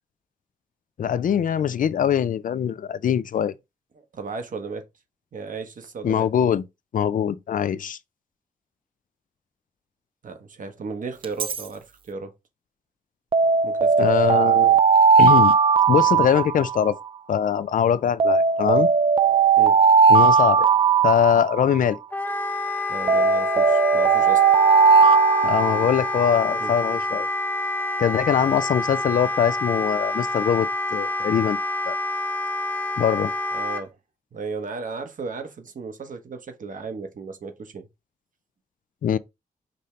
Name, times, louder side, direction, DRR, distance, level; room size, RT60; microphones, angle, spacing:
voice 1, 1.0-3.5 6.0-6.6 6.9-8.0 14.0-14.8 15.2-15.5 15.9-17.0 17.3-18.9 20.1-20.7 21.0-22.0 25.4-27.3 28.0-31.6 31.9-32.0 33.0-33.3 39.0-39.2, left 8 dB, 65° left, 0.4 m, -22 dB
voice 2, 4.0-4.9 5.3-6.3 10.2-12.3 13.6-13.9 19.6-19.8 22.9-24.4 26.6-26.7 33.5-34.0 34.3-37.9, right 4 dB, 60° right, 1.0 m, -35 dB
Alarm, 11.2-11.6 13.3-17.1 18.2-22.0 23.1-26.3, right 5 dB, 35° right, 0.4 m, -18 dB
Wind instrument woodwind instrument, 22.1-33.8, left 2 dB, 10° left, 0.7 m, -27 dB
5.2 x 2.8 x 3.2 m
cardioid pair, 80°, 15 cm